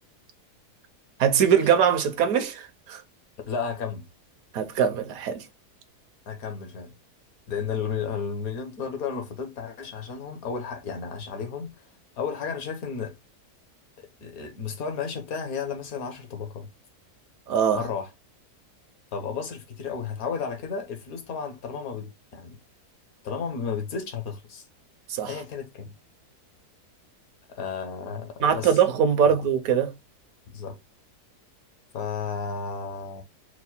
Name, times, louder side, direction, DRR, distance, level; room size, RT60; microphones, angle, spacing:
voice 1, 1.2-3.0 4.5-5.5 17.5-17.8 25.1-25.4 28.4-29.9, right 8 dB, 70° right, 1.0 m, -22 dB
voice 2, 3.5-4.0 6.3-6.9 7.5-11.7 12.2-13.1 14.0-16.7 17.7-18.1 19.1-22.6 23.2-24.6 25.3-25.9 27.5-28.8 30.5-30.8 31.9-33.2, left 6 dB, 65° left, 1.3 m, -33 dB
4.6 x 2.1 x 4.1 m
omnidirectional pair, 1.7 m